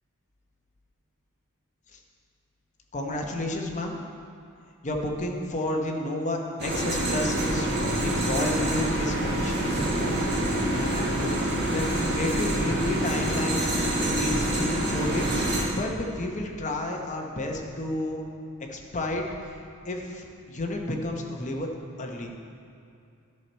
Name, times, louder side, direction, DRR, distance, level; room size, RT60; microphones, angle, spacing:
voice 1, 2.9-4.0 4.8-11.4 11.7-13.6 14.0-15.4 15.7-18.2 18.7-19.2 19.8-21.7 22.0-22.3, left 1 dB, 35° left, 1 dB, 0.9 m, -31 dB
sound 1, 6.6-15.6, right 1 dB, 50° right, 1.7 m, -26 dB
10.5 x 6.8 x 4.4 m, 2.5 s
head